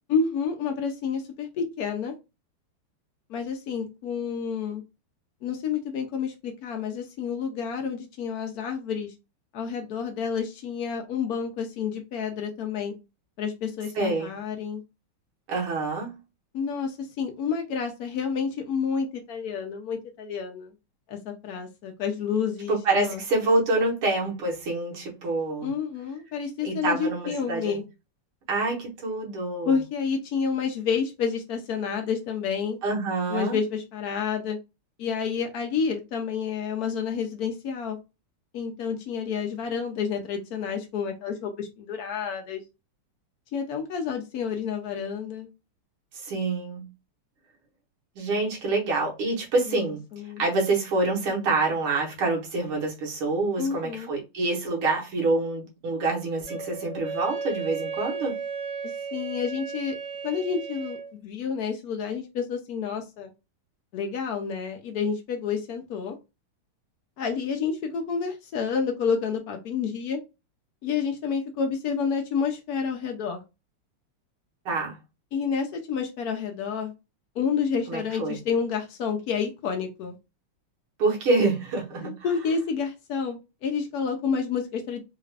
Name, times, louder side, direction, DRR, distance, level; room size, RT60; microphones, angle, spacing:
voice 1, 0.1-2.1 3.3-4.8 5.4-9.1 9.5-12.9 13.4-14.8 16.5-20.7 21.1-23.2 25.6-27.8 29.6-32.8 33.3-34.6 35.0-38.0 38.5-42.6 43.5-45.5 49.7-49.8 50.1-50.4 53.6-54.1 58.8-59.9 60.2-63.3 63.9-66.2 67.2-70.2 70.8-73.4 75.3-76.9 77.4-80.2 82.0-85.0, left 6 dB, 85° left, 0.8 m, -29 dB
voice 2, 14.0-14.3 15.5-16.1 22.7-25.7 26.6-27.8 28.5-29.8 32.8-33.6 46.2-46.9 48.2-50.0 50.4-58.4 74.7-75.0 77.9-78.4 81.0-82.1, right 3 dB, 75° right, 2.1 m, -26 dB
Wind instrument woodwind instrument, 56.4-61.1, right 5 dB, 40° right, 0.7 m, -34 dB
4.3 x 2.4 x 3.2 m
omnidirectional pair, 2.4 m